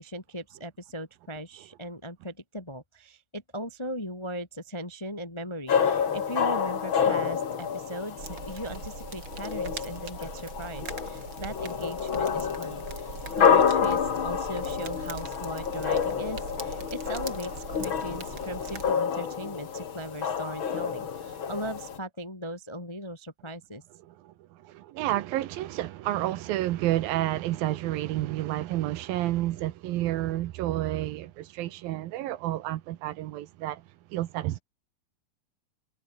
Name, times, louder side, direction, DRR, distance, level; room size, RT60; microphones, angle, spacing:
voice 1, 0.0-23.8, equal, 15° left, 1.0 m, -38 dB
sound 1, 5.7-22.0, left 7 dB, 40° left, 2.1 m, -28 dB
sound 2, 8.2-18.9, right 6 dB, 35° right, 2.4 m, -42 dB
voice 2, 24.0-33.8 34.1-34.6, right 15 dB, 75° right, 2.6 m, -30 dB
omnidirectional pair, 4.4 m